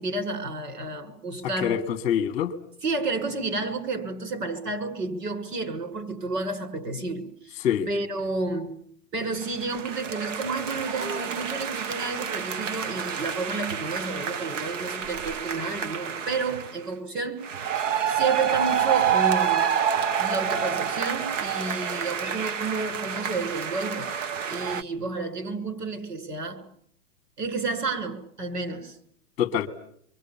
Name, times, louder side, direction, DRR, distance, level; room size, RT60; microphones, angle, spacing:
voice 1, 0.0-1.8 2.8-8.7 9.1-17.4 18.1-19.7 20.0-24.1 24.4-26.6 27.4-29.0, right 3 dB, 85° right, 6.8 m, -31 dB
voice 2, 1.4-2.5 7.6-7.9 29.4-29.7, left 9 dB, 15° left, 1.5 m, -25 dB
sound 1, 9.4-16.7 17.4-24.8, right 8 dB, 50° right, 1.1 m, -28 dB
29.0 x 23.5 x 7.2 m
hypercardioid pair, 175°, 46 cm